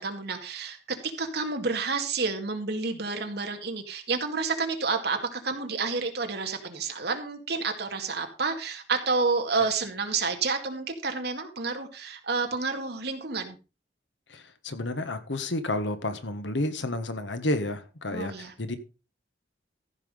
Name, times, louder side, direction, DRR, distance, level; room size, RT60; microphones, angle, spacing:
voice 1, 0.0-13.6 18.1-18.5, right 4 dB, 60° right, 5 dB, 2.1 m, -30 dB
voice 2, 14.3-18.8, left 1 dB, 80° left, 10 dB, 1.5 m, -31 dB
14.5 x 6.0 x 5.2 m, 0.32 s
head